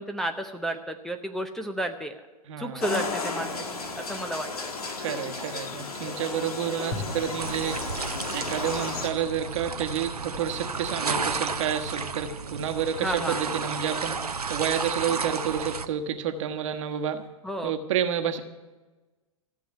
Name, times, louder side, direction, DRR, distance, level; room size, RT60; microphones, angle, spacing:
voice 1, 0.0-2.2 2.6-3.5 4.0-4.5 13.0-13.4 17.4-17.7, right 1 dB, ahead, 2 dB, 0.7 m, -31 dB
voice 2, 2.5-2.8 5.0-7.8 8.3-17.2 17.6-18.4, right 8 dB, 55° right, 7 dB, 1.3 m, -29 dB
sound 1, 2.8-9.1, left 3 dB, 75° left, 1.8 m, -34 dB
sound 2, 6.9-17.2, left 2 dB, 50° left, 2.5 m, -45 dB
sound 3, 7.4-15.9, right 4 dB, 85° right, 0.8 m, -32 dB
14.5 x 7.2 x 9.8 m, 1.2 s
figure-of-eight pair, 100°, 19 cm